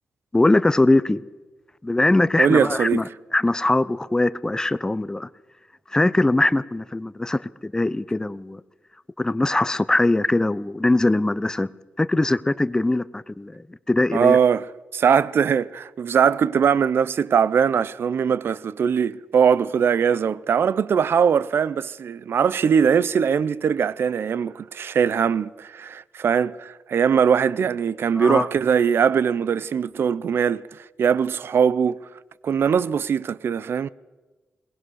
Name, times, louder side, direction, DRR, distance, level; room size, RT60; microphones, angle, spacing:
voice 1, 0.3-1.2 1.8-5.3 5.9-8.6 9.2-11.7 12.0-14.4 28.1-28.5, left 2 dB, 15° left, 0.7 m, -21 dB
voice 2, 2.4-3.0 14.1-14.6 14.9-32.0 32.4-33.9, right 7 dB, 70° right, 0.6 m, -21 dB
21.5 x 19.5 x 6.4 m
wide cardioid pair, 105°, 4 cm